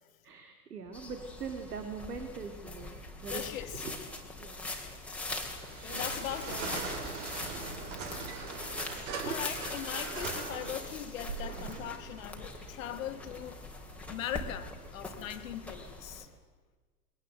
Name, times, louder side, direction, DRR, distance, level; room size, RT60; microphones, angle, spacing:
voice 1, 0.2-3.4 3.7-4.0 4.4-4.7 7.7-8.0 9.0-9.6, right 5 dB, 75° right, 2.4 m, -42 dB
sound 1, 0.9-16.2, left 2 dB, 5° left, 3.0 m, -42 dB
voice 2, 3.3-3.8 5.7-6.9 9.2-13.7 14.1-16.3, left 11 dB, 55° left, 1.8 m, -40 dB
sound 2, 5.5-16.0, right 5 dB, 50° right, 3.8 m, -42 dB
22.0 x 18.5 x 7.9 m
figure-of-eight pair, 100°, 46 cm